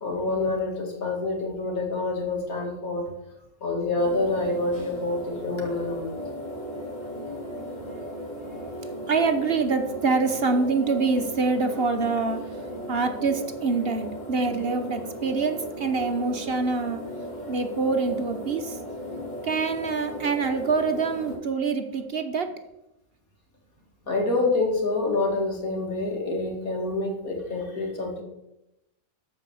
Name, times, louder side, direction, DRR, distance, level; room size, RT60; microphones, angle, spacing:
voice 1, 0.0-3.1 3.6-6.2 24.1-28.2, left 2 dB, 80° left, 1 dB, 2.8 m, -27 dB
sound 1, 4.0-21.3, equal, 30° left, 3.6 m, -36 dB
voice 2, 8.8-12.4 12.9-17.0 17.5-18.8 19.4-22.5, right 4 dB, 50° right, 7 dB, 1.1 m, -25 dB
13.5 x 4.9 x 7.0 m, 0.89 s
omnidirectional pair, 1.5 m